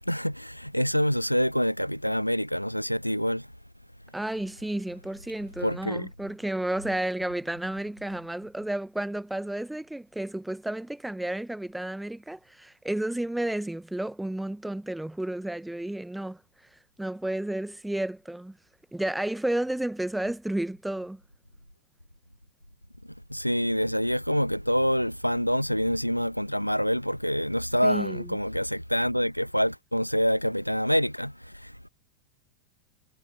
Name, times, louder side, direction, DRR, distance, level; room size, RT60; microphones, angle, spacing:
voice 1, 0.0-3.5 5.6-6.1 23.3-31.9, equal, 90° left, 1.0 m, -26 dB
voice 2, 4.1-16.4 17.0-18.6 18.9-21.2 27.8-28.4, right 1 dB, 5° right, 1.4 m, -32 dB
figure-of-eight pair, 90°, 0 cm